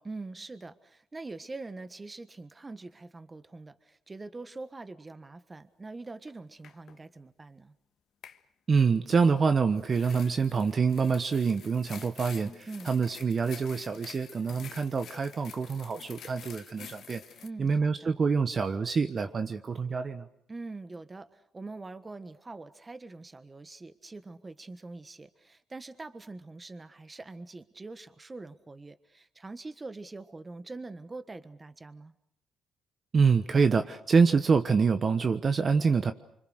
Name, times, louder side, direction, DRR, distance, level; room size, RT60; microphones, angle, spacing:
voice 1, 0.0-7.7 12.7-12.9 17.4-18.1 20.5-32.1, right 3 dB, 25° right, 12 dB, 1.4 m, -44 dB
sound 1, 6.3-6.4 6.6-7.0 8.2-8.4 9.8-17.5, left 8 dB, 65° left, 1.4 m, -48 dB
voice 2, 8.7-17.2 17.6-20.3 33.1-36.1, right 5 dB, 40° right, 9 dB, 1.2 m, -26 dB
26.0 x 24.5 x 6.5 m, 0.70 s
cardioid pair, 90°, 0 cm